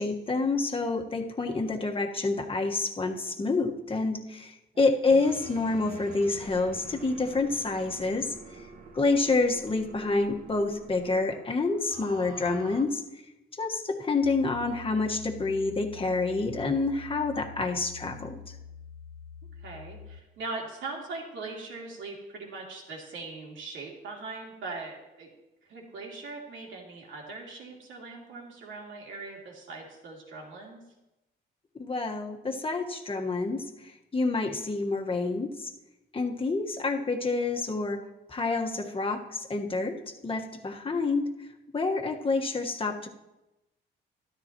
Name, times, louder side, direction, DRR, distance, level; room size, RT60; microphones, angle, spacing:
voice 1, 0.0-8.7 8.9-13.0 13.6-18.5 31.7-35.7 36.1-38.0 38.3-40.0 40.2-41.3 41.7-43.1, left 3 dB, 25° left, 2 dB, 1.5 m, -28 dB
sound 1, 5.1-12.8, right 4 dB, 45° right, 1.4 m, -47 dB
sound 2, 14.2-20.2, left 6 dB, 90° left, 0.7 m, -46 dB
voice 2, 19.6-25.3 25.7-30.8, right 3 dB, 75° right, -2 dB, 2.9 m, -40 dB
13.0 x 12.5 x 3.0 m, 0.96 s
cardioid pair, 90°, 20 cm